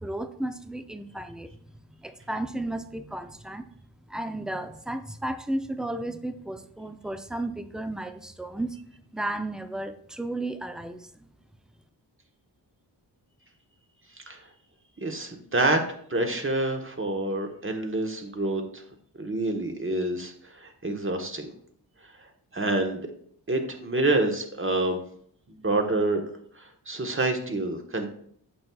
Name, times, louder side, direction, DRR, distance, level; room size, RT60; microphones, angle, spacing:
voice 1, 0.0-1.5 1.9-3.7 4.1-8.8 9.1-11.1, right 1 dB, ahead, 9 dB, 0.5 m, -33 dB
voice 2, 15.0-15.8 16.1-18.8 19.2-21.5 22.5-23.1 23.5-25.0 25.6-26.2 26.6-28.1, right 2 dB, 30° right, 4 dB, 1.1 m, -27 dB
8.6 x 6.1 x 2.3 m, 0.62 s
cardioid pair, 65°, 42 cm